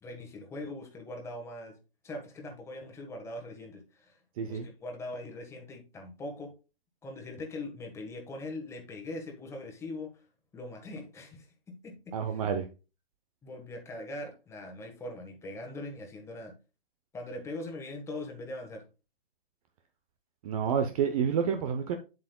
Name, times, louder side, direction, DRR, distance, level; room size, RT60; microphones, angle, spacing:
voice 1, 0.0-1.7 2.0-4.2 4.4-6.5 7.0-10.3 10.5-12.4 13.4-16.6 17.1-18.8, left 2 dB, 10° left, 1 dB, 1.4 m, -41 dB
voice 2, 12.1-12.6 20.4-21.9, right 7 dB, 35° right, 6 dB, 0.8 m, -29 dB
7.7 x 7.6 x 2.3 m, 0.30 s
hypercardioid pair, 130°, 30 cm